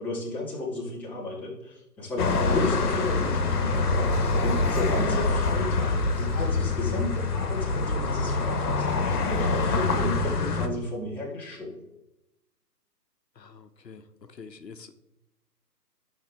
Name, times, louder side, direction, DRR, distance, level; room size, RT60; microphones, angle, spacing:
voice 1, 0.0-11.8, left 1 dB, 5° left, -8 dB, 2.2 m, -33 dB
sound 1, 2.2-10.7, left 3 dB, 60° left, 1.6 m, -25 dB
voice 2, 13.4-14.0 14.3-14.9, left 5 dB, 80° left, 9 dB, 1.1 m, -46 dB
12.0 x 6.4 x 3.5 m, 0.89 s
figure-of-eight pair, 140°, 50 cm